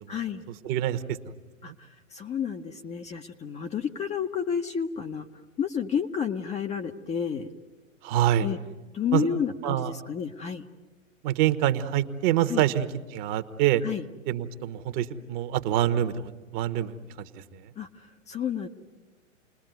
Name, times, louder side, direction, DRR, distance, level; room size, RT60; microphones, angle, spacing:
voice 1, 0.1-0.4 1.6-5.3 5.6-7.5 8.4-8.6 8.9-10.7 12.5-12.6 13.8-14.0 17.8-18.7, left 7 dB, 15° left, 5 dB, 0.9 m, -31 dB
voice 2, 0.6-1.0 1.7-1.8 8.0-8.5 9.1-9.3 9.6-9.9 11.2-12.9 13.1-13.8 14.3-17.4, right 12 dB, 35° right, 10 dB, 1.4 m, -26 dB
29.5 x 20.5 x 9.3 m, 1.2 s
figure-of-eight pair, 110°, 39 cm